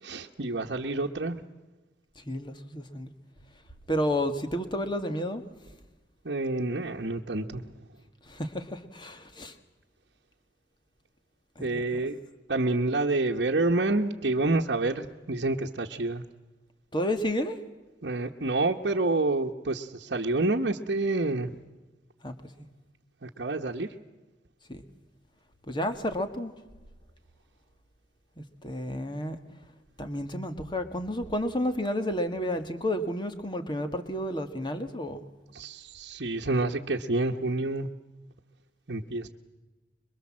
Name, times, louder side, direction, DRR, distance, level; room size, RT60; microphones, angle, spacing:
voice 1, 0.0-1.4 6.2-7.7 11.6-12.2 12.5-16.2 18.0-21.5 23.2-23.9 35.5-37.9 38.9-39.3, right 2 dB, 60° right, -1 dB, 1.1 m, -28 dB
voice 2, 2.2-3.1 3.9-5.4 8.3-9.6 11.6-11.8 16.9-17.6 22.2-22.7 24.7-24.8 25.7-26.5 28.4-29.4 30.0-35.3, equal, 25° left, 8 dB, 1.8 m, -31 dB
26.0 x 23.0 x 7.5 m, 1.2 s
head